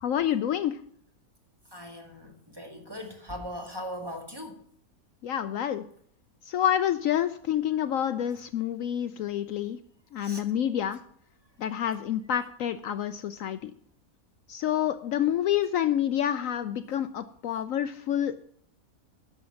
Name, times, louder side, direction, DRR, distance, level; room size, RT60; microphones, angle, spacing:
voice 1, 0.0-0.8 5.2-5.8 6.5-9.8 10.1-11.0 11.6-13.7 14.5-18.3, left 10 dB, 70° left, 0.9 m, -28 dB
voice 2, 1.7-4.6 10.2-10.4, equal, 15° right, 1.8 m, -39 dB
10.0 x 7.0 x 7.0 m
omnidirectional pair, 1.6 m